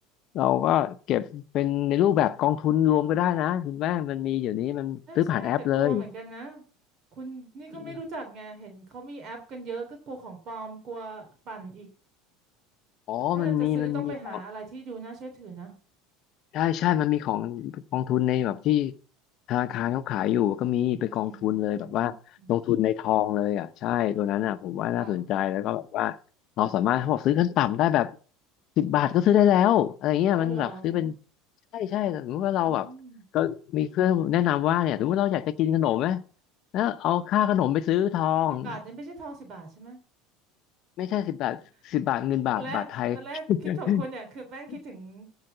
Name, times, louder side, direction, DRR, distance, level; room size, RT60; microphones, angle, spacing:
voice 1, 0.3-6.1 7.8-8.0 13.1-14.4 16.5-18.9 19.5-22.1 22.5-26.2 26.6-28.2 28.8-31.1 31.7-32.9 33.3-36.2 36.7-38.7 41.0-43.2 43.5-44.0 44.7-44.8, left 11 dB, 55° left, 0.8 m, -25 dB
voice 2, 5.1-6.6 7.1-11.9 13.3-15.7 21.2-22.1 22.4-22.5 24.9-25.2 30.3-31.1 32.5-33.2 38.5-40.0 42.5-42.9 43.1-43.4 43.8-45.3, right 3 dB, 45° right, 3.1 m, -40 dB
14.5 x 4.9 x 6.8 m
supercardioid pair, 95°, 0 cm